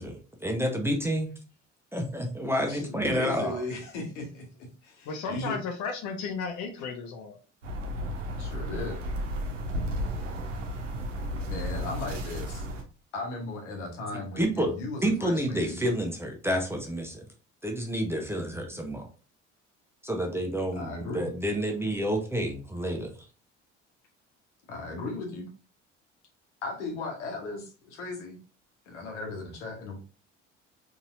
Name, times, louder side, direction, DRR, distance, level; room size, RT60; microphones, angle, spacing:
voice 1, 0.0-1.3 1.9-3.6 14.4-14.7 15.0-17.3 17.6-19.1 20.0-23.1, equal, 5° right, 2 dB, 0.7 m, -29 dB
voice 2, 2.6-4.4 4.8-5.6 8.4-9.0 11.5-12.6 13.1-15.9 18.7-18.9 20.7-21.3 24.7-25.5 26.6-28.4 28.9-30.0, left 2 dB, 70° left, 1 dB, 1.2 m, -36 dB
voice 3, 5.0-7.4, left 5 dB, 50° left, 5 dB, 0.8 m, -34 dB
sound 1, 7.6-12.8, equal, 75° right, 0.7 m, -33 dB
4.0 x 2.8 x 2.5 m, 0.35 s
figure-of-eight pair, 55°, 37 cm